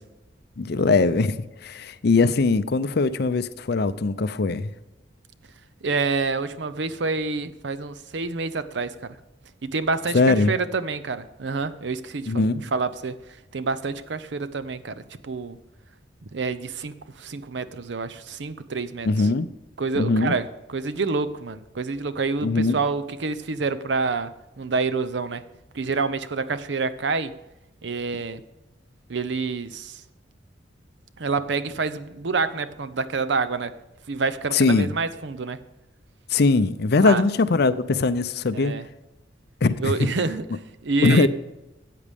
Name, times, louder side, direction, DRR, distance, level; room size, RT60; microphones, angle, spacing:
voice 1, 0.6-4.7 10.1-10.6 12.3-12.7 19.0-19.5 20.0-20.3 22.4-22.8 34.5-34.9 36.3-38.7 39.6-40.0 41.0-41.3, left 3 dB, 60° left, 14 dB, 0.5 m, -21 dB
voice 2, 5.8-9.2 9.6-12.4 12.7-13.2 13.5-15.6 16.3-19.3 19.8-24.3 24.6-25.4 25.7-27.3 27.8-28.4 29.1-30.0 31.2-33.7 34.1-35.6 37.0-37.2 38.5-38.8 39.8-41.3, right 4 dB, 70° right, 13 dB, 0.6 m, -27 dB
13.5 x 8.5 x 3.5 m, 1.0 s
head